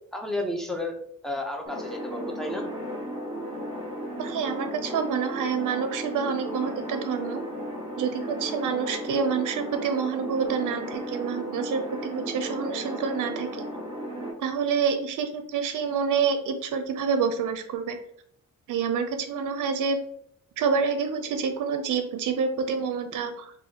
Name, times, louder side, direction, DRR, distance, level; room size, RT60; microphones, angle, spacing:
voice 1, 0.1-0.9 1.2-2.7, left 1 dB, ahead, 1 dB, 0.5 m, -32 dB
sound 1, 1.6-14.3, equal, 15° right, 1.4 m, -35 dB
voice 2, 4.2-7.4 8.0-13.5 14.4-18.0 18.7-20.0 20.6-23.5, right 6 dB, 80° right, 7 dB, 0.5 m, -27 dB
4.0 x 2.4 x 2.8 m, 0.69 s
wide cardioid pair, 140°, 31 cm